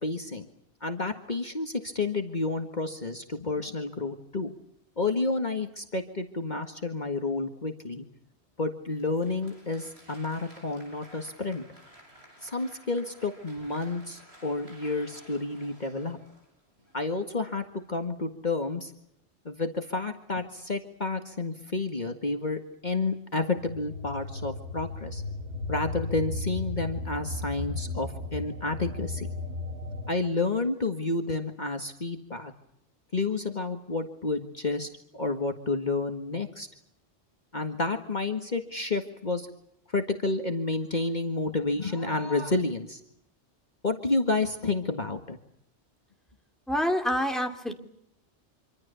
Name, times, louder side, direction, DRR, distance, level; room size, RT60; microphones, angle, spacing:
voice 1, 0.0-0.5 0.8-4.5 5.0-8.1 8.6-11.6 12.4-16.2 16.9-18.9 19.5-25.2 25.7-29.3 30.1-32.5 33.1-36.7 37.5-39.5 39.9-43.0 43.8-45.4, left 3 dB, 40° left, 5 dB, 1.9 m, -30 dB
Applause, 8.9-17.0, equal, 65° right, 8.2 m, -54 dB
sound 1, 23.6-30.1, left 2 dB, 80° right, 2.4 m, -35 dB
voice 2, 46.7-47.7, equal, ahead, 4 dB, 3.0 m, -27 dB
26.5 x 25.0 x 7.0 m, 0.76 s
omnidirectional pair, 1.2 m